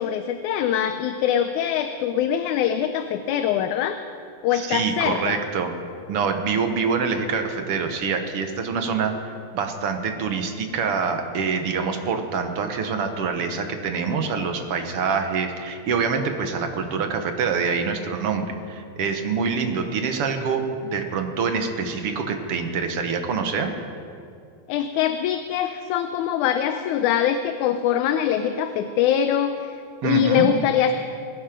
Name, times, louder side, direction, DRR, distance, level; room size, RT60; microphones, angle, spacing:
voice 1, 0.0-4.0 4.4-5.4 24.7-30.9, left 9 dB, 80° left, 8 dB, 2.0 m, -23 dB
voice 2, 4.5-5.7 6.1-23.7 30.0-30.5, right 5 dB, 60° right, 6 dB, 1.7 m, -25 dB
21.5 x 12.0 x 5.1 m, 2.4 s
omnidirectional pair, 3.5 m